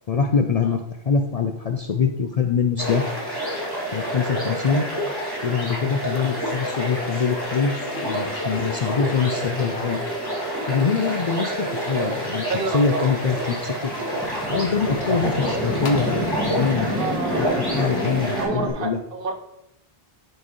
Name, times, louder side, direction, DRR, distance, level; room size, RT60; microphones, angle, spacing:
voice 1, 0.1-3.1 3.9-4.9 5.4-7.8 8.0-10.0 10.7-13.9 14.5-17.0 17.3-17.5 17.7-19.0, left 5 dB, 50° left, 5 dB, 0.5 m, -24 dB
sound 1, 2.8-18.4, right 1 dB, 20° right, 2.2 m, -28 dB
sound 2, 6.1-16.0, left 4 dB, 70° left, 1.0 m, -40 dB
voice 2, 12.3-13.2 16.8-17.6 18.3-19.3, right 4 dB, 60° right, 4 dB, 1.0 m, -29 dB
sound 3, 13.9-18.7, left 1 dB, 5° right, 1.6 m, -29 dB
10.5 x 4.5 x 3.1 m, 0.80 s
omnidirectional pair, 1.1 m